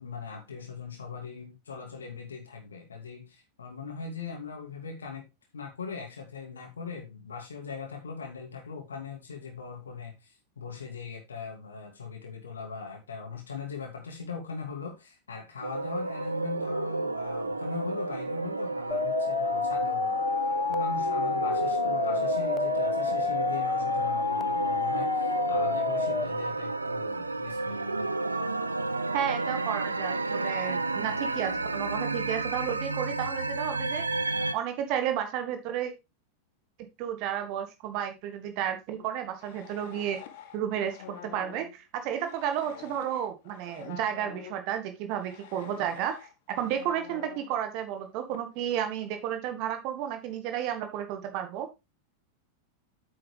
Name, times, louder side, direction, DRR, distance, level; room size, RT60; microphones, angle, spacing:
voice 1, 0.0-5.3 5.5-20.2 20.7-28.1, left 5 dB, 70° left, 2.3 m, -40 dB
sound 1, 15.6-34.5, right 3 dB, 80° right, 0.7 m, -31 dB
sound 2, 18.9-26.3, left 5 dB, 15° left, 0.3 m, -29 dB
voice 2, 29.1-34.0 34.5-35.9 37.0-40.2 40.5-46.3 46.6-51.7, right 10 dB, 45° right, 1.5 m, -32 dB
sound 3, 39.0-44.7 45.1-48.1 48.3-48.4 49.0-49.3, left 10 dB, 50° left, 1.2 m, -47 dB
8.7 x 7.5 x 3.3 m
figure-of-eight pair, 90°, 0 cm